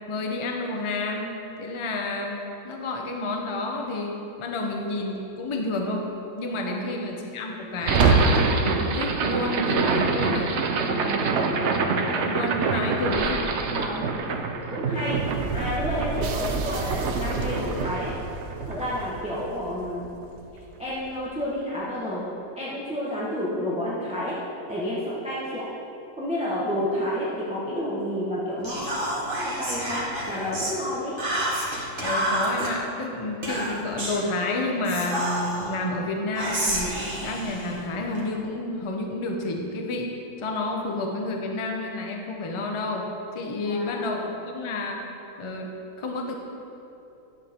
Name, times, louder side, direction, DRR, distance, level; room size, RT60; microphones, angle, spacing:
voice 1, 0.1-6.1 6.3-10.5 12.1-13.5 32.0-36.9 37.2-40.1 40.4-43.0 43.3-45.0 45.4-46.3, left 2 dB, 45° left, 1 dB, 0.3 m, -30 dB
voice 2, 6.5-6.8 11.0-11.6 13.7-14.4 14.7-15.2 15.5-18.1 18.7-20.1 20.8-22.2 22.6-24.4 24.7-25.6 26.2-28.9 29.2-31.2 43.6-44.3, equal, 5° right, -7 dB, 0.9 m, -30 dB
sound 1, 7.8-20.0, right 4 dB, 90° right, 0.6 m, -25 dB
Whispering, 28.6-30.8 31.2-32.7 33.4-34.2 34.8-35.7 36.3-38.2, right 1 dB, 30° right, 1.6 m, -29 dB
11.5 x 7.6 x 3.6 m, 2.9 s
omnidirectional pair, 2.0 m